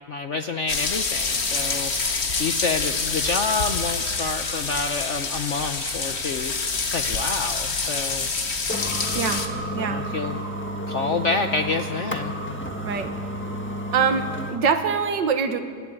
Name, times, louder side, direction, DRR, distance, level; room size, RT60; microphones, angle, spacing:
voice 1, 0.1-6.5 6.9-8.3 9.8-10.4 10.9-12.4, left 4 dB, 65° left, 7 dB, 0.7 m, -28 dB
sound 1, 0.7-9.5, left 4 dB, 35° left, 1.5 m, -26 dB
sound 2, 5.6-14.7, equal, 5° left, 1.2 m, -32 dB
voice 2, 13.9-15.6, right 6 dB, 65° right, 8 dB, 1.9 m, -23 dB
29.0 x 11.5 x 8.8 m, 2.2 s
omnidirectional pair, 2.2 m